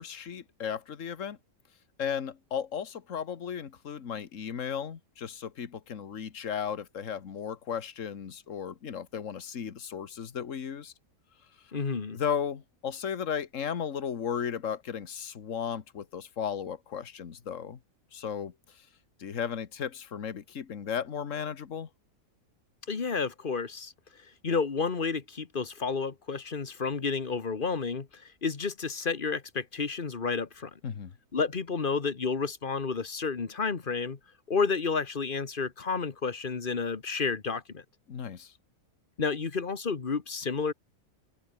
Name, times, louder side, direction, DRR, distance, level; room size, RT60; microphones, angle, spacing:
voice 1, 0.0-1.4 2.0-10.9 12.1-17.8 18.1-18.5 19.2-21.9 30.8-31.1 38.1-38.5, left 7 dB, 60° left, 1.8 m, -35 dB
voice 2, 11.7-12.2 22.9-23.9 24.4-30.7 31.3-34.2 34.5-37.8 39.2-40.7, left 5 dB, 35° left, 1.5 m, -31 dB
omnidirectional pair, 1.5 m